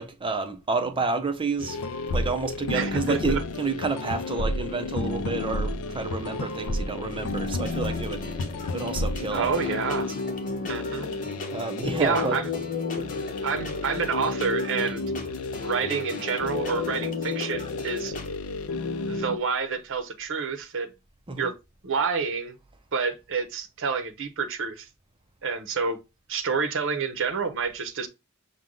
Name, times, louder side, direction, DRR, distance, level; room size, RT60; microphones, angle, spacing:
voice 1, 0.0-1.8 2.1-8.2 8.7-9.6 10.1-10.2 11.5-12.4 21.3-21.5, right 4 dB, 25° right, 0.6 m, -29 dB
sound 1, 1.6-19.4, left 3 dB, 80° left, 0.5 m, -31 dB
voice 2, 2.7-3.4 9.3-10.1 10.6-11.1 12.0-12.5 13.4-15.0 15.6-18.1 19.1-20.9 21.4-21.5 21.8-22.5 22.9-24.9 25.4-26.0 26.3-28.1, right 5 dB, 65° right, 0.8 m, -28 dB
sound 2, 7.1-18.3, left 3 dB, 40° left, 0.9 m, -39 dB
6.2 x 2.2 x 3.7 m
head